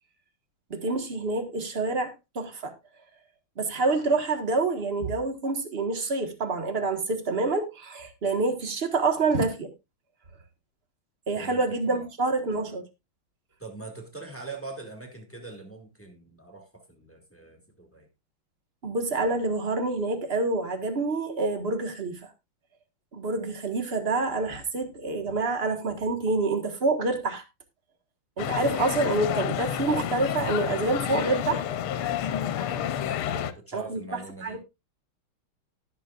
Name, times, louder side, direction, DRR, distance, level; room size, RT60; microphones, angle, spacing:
voice 1, 0.7-2.7 3.6-9.7 11.3-12.8 18.8-22.3 23.1-27.4 28.4-31.6 33.7-34.0 34.4-34.6, right 3 dB, 30° right, 1.5 m, -27 dB
voice 2, 11.3-12.1 13.6-18.1 23.3-23.5 33.3-34.6, right 3 dB, 5° left, 2.0 m, -42 dB
sound 1, 28.4-33.5, left 10 dB, 80° left, 1.7 m, -29 dB
19.0 x 6.8 x 2.4 m
omnidirectional pair, 2.3 m